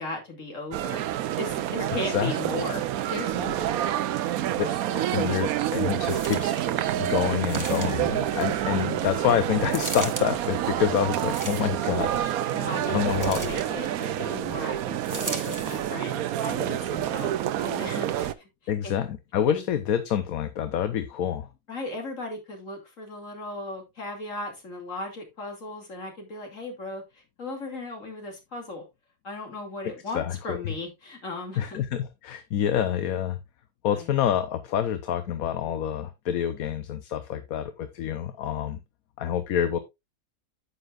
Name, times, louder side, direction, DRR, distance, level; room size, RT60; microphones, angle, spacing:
voice 1, 0.0-3.7 4.6-5.1 6.1-6.2 12.5-17.3 17.6-18.5 18.8-18.9 19.5-19.6 21.7-28.8 29.2-31.8 33.9-34.1, left 2 dB, 55° left, 3.0 m, -37 dB
sound 1, 0.7-18.3, right 12 dB, 75° right, 1.0 m, -28 dB
voice 2, 5.1-6.5 7.0-12.3 12.9-13.4 18.7-21.5 29.8-30.7 31.6-33.4 33.8-38.8 39.2-39.8, left 9 dB, 70° left, 1.2 m, -27 dB
sound 2, 6.0-6.7 7.5-8.2 9.7-10.3 11.2-11.9 13.2-13.7 15.0-15.9 16.6-16.7, right 2 dB, 15° right, 1.2 m, -37 dB
9.9 x 8.1 x 2.5 m
omnidirectional pair, 1.6 m